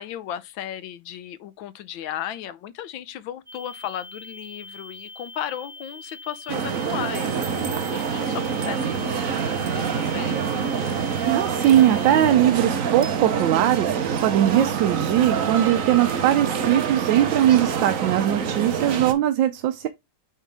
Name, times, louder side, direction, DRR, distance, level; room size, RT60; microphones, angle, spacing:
voice 1, 0.0-10.4, left 10 dB, 80° left, 1.4 m, -35 dB
sound 1, 3.5-12.3, left 3 dB, 25° right, 1.6 m, -42 dB
sound 2, 6.5-19.1, right 6 dB, 50° right, 1.1 m, -26 dB
voice 2, 11.3-19.9, right 12 dB, 75° right, 1.3 m, -20 dB
8.3 x 3.7 x 3.4 m
omnidirectional pair, 2.1 m